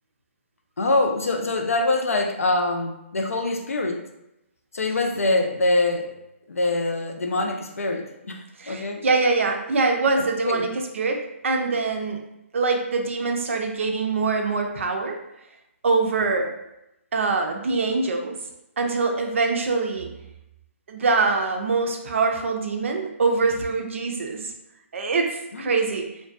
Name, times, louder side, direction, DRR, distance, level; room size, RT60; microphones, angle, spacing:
voice 1, 0.8-4.0 4.7-6.1 6.5-9.0 10.4-10.6 25.5-25.7, left 2 dB, 85° left, 3 dB, 0.4 m, -24 dB
voice 2, 8.6-10.7 10.9-12.2 12.5-15.2 15.8-16.5 17.1-18.4 18.8-20.1 20.9-24.5 24.9-26.1, right 4 dB, 65° right, 3 dB, 0.4 m, -24 dB
2.5 x 2.2 x 2.4 m, 0.87 s
hypercardioid pair, 145°, 7 cm